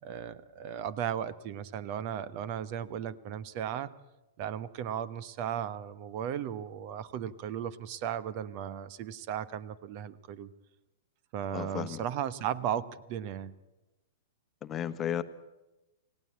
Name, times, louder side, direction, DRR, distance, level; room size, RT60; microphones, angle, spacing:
voice 1, 0.0-3.9 4.4-10.5 11.3-13.5, right 9 dB, 40° right, 17 dB, 1.1 m, -36 dB
voice 2, 11.5-12.0 14.6-15.2, left 10 dB, 25° left, 11 dB, 1.2 m, -34 dB
28.0 x 17.5 x 8.7 m, 1.1 s
figure-of-eight pair, 105°, 0 cm